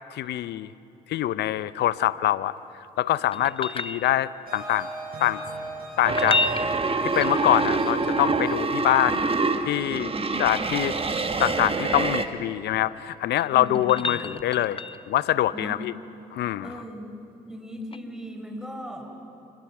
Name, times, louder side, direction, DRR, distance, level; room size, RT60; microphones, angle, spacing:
voice 1, 0.1-0.7 1.1-2.5 3.0-4.9 5.2-5.4 6.0-6.4 7.0-9.3 9.7-10.1 10.4-10.9 11.4-14.8 15.1-15.9 16.3-16.8, left 13 dB, 75° left, 16 dB, 0.6 m, -24 dB
sound 1, 3.3-4.5 6.0-7.9 10.0-11.6 13.1-15.2 17.9-18.0, left 3 dB, 30° left, 0.7 m, -32 dB
sound 2, 4.5-11.6, right 3 dB, 55° right, 5.0 m, -39 dB
sound 3, 6.0-12.3, right 3 dB, 30° right, 1.4 m, -26 dB
voice 2, 13.5-14.2 15.5-15.7 16.6-17.1 17.4-19.3, equal, 5° right, 3 dB, 4.7 m, -38 dB
27.0 x 22.0 x 6.0 m, 2.7 s
supercardioid pair, 55°, 18 cm